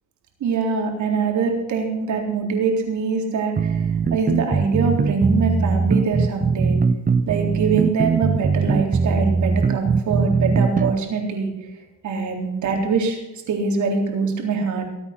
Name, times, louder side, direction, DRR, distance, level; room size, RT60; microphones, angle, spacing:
voice 1, 0.4-3.8 4.1-6.8 7.3-11.7 12.0-13.2 13.5-14.9, right 4 dB, 70° right, 2 dB, 3.8 m, -23 dB
sound 1, 3.6-10.9, right 5 dB, 30° right, 0.8 m, -20 dB
21.0 x 8.8 x 6.0 m, 0.99 s
cardioid pair, 90°, 30 cm